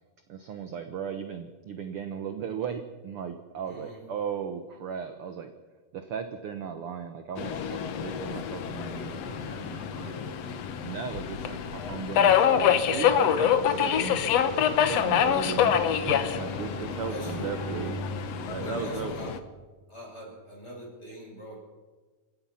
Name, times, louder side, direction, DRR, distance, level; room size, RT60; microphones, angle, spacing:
voice 1, 0.3-5.5 5.9-10.1 10.8-14.2 14.9-17.9 18.5-19.1, right 7 dB, 60° right, 7 dB, 1.5 m, -36 dB
voice 2, 3.6-4.0 10.0-10.3 17.1-17.5 18.6-19.4 19.9-21.6, equal, 15° left, -1 dB, 6.7 m, -42 dB
Subway metro underground, 7.4-19.4, left 8 dB, 60° left, 1.9 m, -26 dB
Bowed string instrument, 15.4-19.8, right 2 dB, 80° right, 3.7 m, -41 dB
28.0 x 16.5 x 5.8 m, 1.3 s
omnidirectional pair, 4.0 m